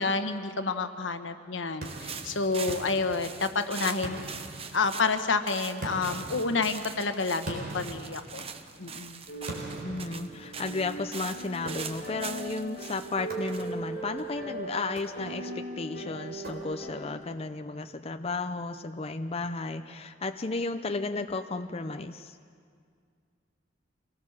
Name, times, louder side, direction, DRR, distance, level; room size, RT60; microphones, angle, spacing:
voice 1, 0.0-4.3 4.7-8.5 8.8-9.2, left 4 dB, 85° left, 8 dB, 1.2 m, -29 dB
sound 1, 1.8-14.6, right 6 dB, 30° right, 0.9 m, -42 dB
sound 2, 1.8-3.6 4.0-5.2 5.8-8.8 9.5-10.9 11.6-12.3 13.3-14.0 14.8-15.6 16.4-17.1, right 1 dB, 55° right, 4.1 m, -42 dB
sound 3, 9.3-17.1, right 2 dB, 55° left, 5.6 m, -39 dB
voice 2, 9.8-22.4, left 3 dB, 30° left, 8 dB, 0.6 m, -34 dB
25.0 x 18.5 x 7.3 m, 2.2 s
head